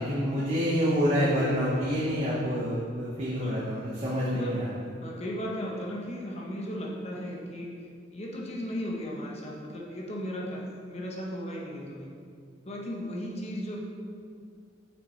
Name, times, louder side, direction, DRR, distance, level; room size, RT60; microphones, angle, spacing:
voice 1, 0.0-4.7, equal, 30° right, -6 dB, 0.8 m, -27 dB
voice 2, 3.4-3.7 4.3-4.6 5.0-7.7 8.1-12.1 12.6-13.8, equal, 35° left, -2 dB, 1.0 m, -36 dB
6.3 x 5.9 x 3.2 m, 2.2 s
head